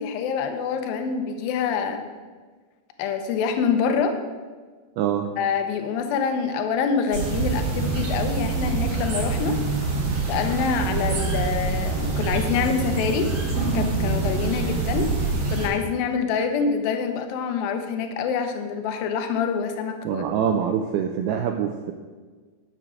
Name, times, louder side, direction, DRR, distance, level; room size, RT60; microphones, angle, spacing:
voice 1, 0.0-2.0 3.0-4.2 5.4-9.6 10.3-13.3 13.7-15.1 15.5-20.2, left 6 dB, 75° left, 6 dB, 2.2 m, -26 dB
voice 2, 5.0-5.3 20.1-21.9, right 8 dB, 85° right, 4 dB, 2.3 m, -24 dB
sound 1, 7.1-15.7, right 4 dB, 45° right, 3.2 m, -25 dB
10.5 x 7.3 x 6.4 m, 1.4 s
omnidirectional pair, 5.2 m